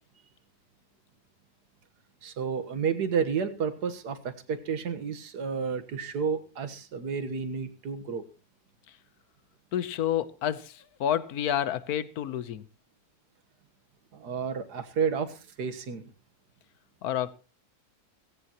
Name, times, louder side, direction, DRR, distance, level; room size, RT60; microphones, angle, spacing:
voice 1, 2.2-8.2 14.1-16.0, right 6 dB, 85° right, 1.9 m, -31 dB
voice 2, 9.7-12.7 17.0-17.3, left 10 dB, 75° left, 1.4 m, -29 dB
16.5 x 16.5 x 3.0 m
omnidirectional pair, 1.7 m